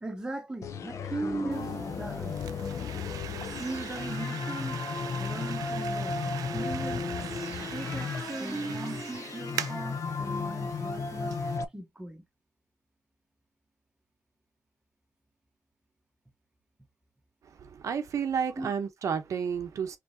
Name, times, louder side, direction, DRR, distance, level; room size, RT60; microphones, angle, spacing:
voice 1, 0.0-2.4 3.6-4.8 5.2-7.1 7.7-11.4 11.7-12.2 18.6-18.7, right 2 dB, 10° right, 0.9 m, -38 dB
sound 1, 0.6-11.6, left 5 dB, 55° left, 0.6 m, -34 dB
sound 2, 1.5-11.6, right 10 dB, 90° right, 0.4 m, -42 dB
voice 2, 17.8-20.0, right 7 dB, 60° right, 0.7 m, -31 dB
4.7 x 3.2 x 2.6 m
cardioid pair, 125°, 6 cm